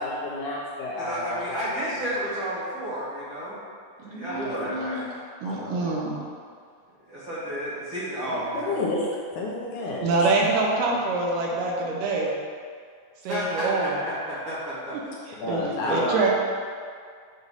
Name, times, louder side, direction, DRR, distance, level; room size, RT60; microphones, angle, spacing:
voice 1, 0.0-1.8 2.1-2.3 4.3-5.0 5.4-6.0 8.3-10.3 15.4-16.0, left 2 dB, 75° left, -4 dB, 1.9 m, -31 dB
voice 2, 1.0-3.6 4.0-5.2 7.1-8.8 13.2-15.1 15.6-16.2, equal, 50° right, -10 dB, 1.6 m, -31 dB
voice 3, 4.0-5.0 5.4-6.1 10.0-12.3 13.2-14.0 15.3-16.3, right 3 dB, 75° right, -2 dB, 2.3 m, -26 dB
8.0 x 2.7 x 5.4 m, 2.1 s
omnidirectional pair, 4.0 m